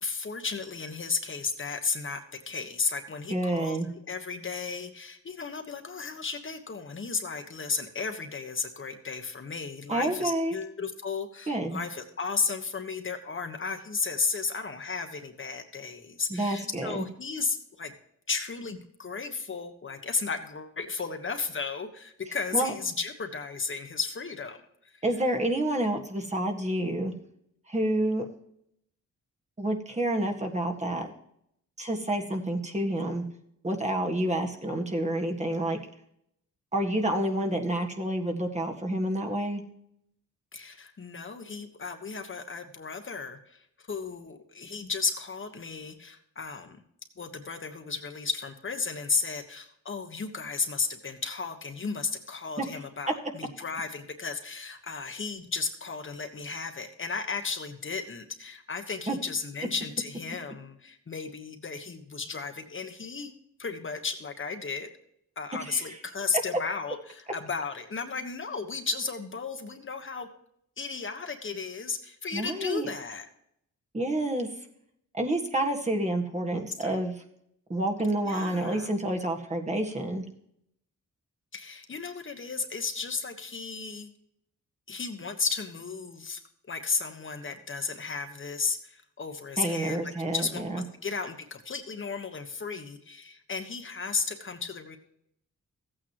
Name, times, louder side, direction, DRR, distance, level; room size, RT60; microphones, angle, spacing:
voice 1, 0.0-2.2 2.5-17.9 18.3-24.6 24.8-25.0 40.5-46.8 47.2-63.3 63.6-64.9 65.4-70.3 70.8-73.2 76.8-77.0 78.2-78.9 81.5-84.1 84.9-86.4 86.7-90.0 90.2-90.6 91.0-95.0, left 4 dB, 40° left, 5 dB, 1.3 m, -34 dB
voice 2, 3.3-3.9 9.9-10.6 11.5-11.8 16.3-17.0 22.5-22.7 25.0-27.1 27.7-28.2 29.6-31.1 31.8-33.2 33.6-35.8 36.7-39.6 52.6-52.7 59.1-59.2 65.6-66.0 72.3-72.9 73.9-74.5 75.1-77.1 77.7-80.2 89.6-90.8, right 1 dB, 20° right, 2 dB, 1.7 m, -29 dB
15.0 x 8.8 x 3.0 m, 0.73 s
cardioid pair, 95°, 30 cm